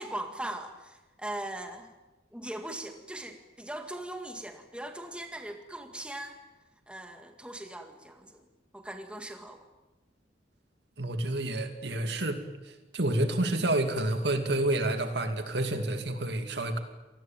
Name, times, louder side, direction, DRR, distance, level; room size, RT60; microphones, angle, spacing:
voice 1, 0.0-1.9 2.3-6.4 6.9-8.4 8.7-9.6, right 1 dB, 5° right, 5 dB, 2.0 m, -40 dB
voice 2, 11.0-16.8, right 1 dB, 65° right, 7 dB, 2.5 m, -29 dB
27.0 x 19.5 x 9.0 m, 1.1 s
head